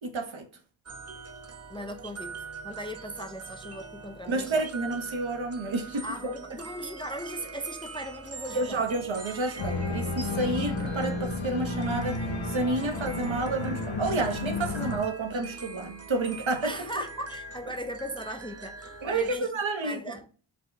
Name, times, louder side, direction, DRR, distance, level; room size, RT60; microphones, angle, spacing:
voice 1, 0.0-0.5 4.3-6.3 8.5-16.7 19.0-20.1, right 2 dB, 70° right, 1.0 m, -30 dB
sound 1, 0.9-19.4, right 4 dB, 30° right, 0.6 m, -43 dB
voice 2, 1.7-4.7 6.0-8.8 16.6-19.5 19.8-20.3, equal, 10° left, 0.4 m, -38 dB
Organ, 9.6-15.0, left 2 dB, 85° left, 0.7 m, -32 dB
4.7 x 2.2 x 4.0 m
cardioid pair, 40°, 48 cm